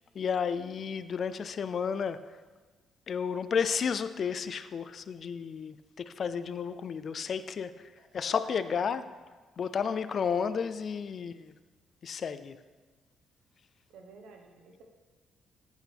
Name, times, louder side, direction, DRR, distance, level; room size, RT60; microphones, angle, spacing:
voice 1, 0.1-2.2 3.1-9.0 9.6-11.5 12.0-12.6, left 6 dB, 50° left, 13 dB, 0.5 m, -32 dB
voice 2, 8.0-9.1 13.9-14.8, right 3 dB, 80° right, 3 dB, 1.3 m, -52 dB
11.0 x 8.2 x 3.5 m, 1.3 s
cardioid pair, 90°, 0 cm